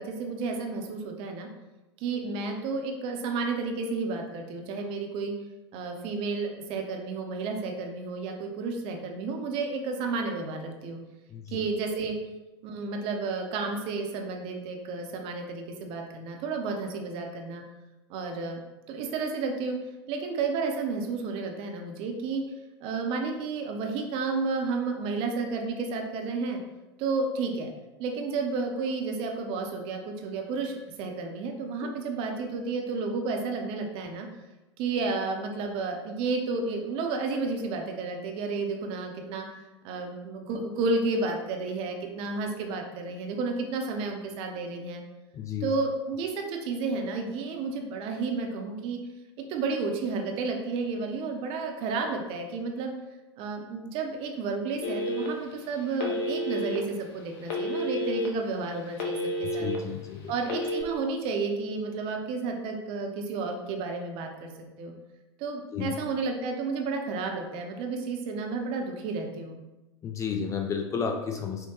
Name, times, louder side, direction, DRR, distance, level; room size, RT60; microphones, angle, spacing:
voice 1, 0.0-1.5 2.0-5.3 5.7-11.0 11.5-12.2 12.6-17.6 18.1-18.6 18.9-19.8 20.1-22.4 22.8-26.6 27.0-27.7 28.0-34.3 34.8-39.5 39.8-45.0 45.6-49.0 49.5-52.9 53.4-59.7 60.3-64.9 65.4-69.6, right 4 dB, 40° right, 3 dB, 0.6 m, -31 dB
voice 2, 11.3-11.7 31.8-31.9 45.3-45.7 59.4-60.3 65.7-66.0 70.0-71.7, left 6 dB, 20° left, 4 dB, 0.4 m, -32 dB
Telephone, 54.8-55.5 56.0-56.8 57.5-58.3 58.7-59.8 60.4-60.8, left 1 dB, 50° left, 0.8 m, -30 dB
5.8 x 2.2 x 2.9 m, 1.0 s
figure-of-eight pair, 85°, 14 cm